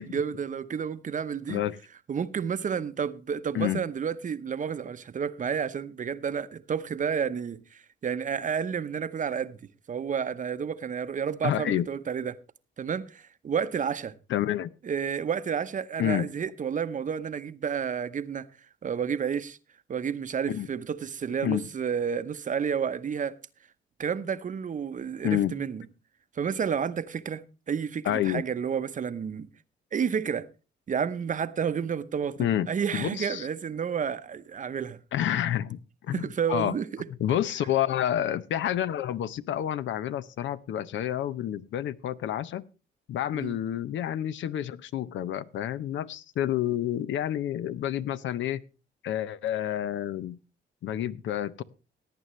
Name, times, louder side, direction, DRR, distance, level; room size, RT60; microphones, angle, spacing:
voice 1, 0.0-1.6 2.1-9.6 9.9-12.4 12.8-14.1 14.8-18.5 18.8-19.6 19.9-23.3 24.0-25.8 26.4-29.5 29.9-30.4 30.9-35.0 36.1-36.9 43.3-43.6, right 7 dB, 40° right, 0.8 m, -30 dB
voice 2, 11.4-11.9 14.3-14.7 16.0-16.3 20.5-20.7 21.4-21.7 25.2-25.6 28.0-28.4 32.4-32.7 32.9-33.5 35.1-36.8 37.2-42.6 43.1-48.6 49.0-50.4 50.8-51.6, left 11 dB, 70° left, 0.6 m, -29 dB
17.5 x 9.1 x 3.1 m
cardioid pair, 90°, 20 cm